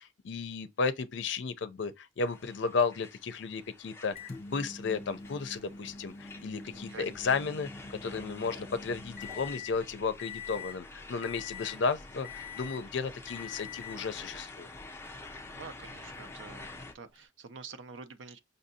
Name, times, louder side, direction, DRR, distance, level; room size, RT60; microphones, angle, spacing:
voice 1, 0.0-4.2 4.4-14.7, left 4 dB, 70° left, 0.5 m, -33 dB
sound 1, 2.3-16.9, left 2 dB, 15° left, 0.5 m, -49 dB
Microwave oven, 4.2-9.8 10.2-10.8 11.2-11.8 12.2-12.9 13.3-14.1 15.1-15.2 17.2-17.3, left 5 dB, 35° left, 0.9 m, -45 dB
voice 2, 6.7-7.1 11.7-11.8 15.5-16.7 16.9-18.4, right 5 dB, 80° right, 0.5 m, -47 dB
sound 2, 8.3-9.9, left 3 dB, 20° right, 1.4 m, -56 dB
5.4 x 2.6 x 2.7 m
head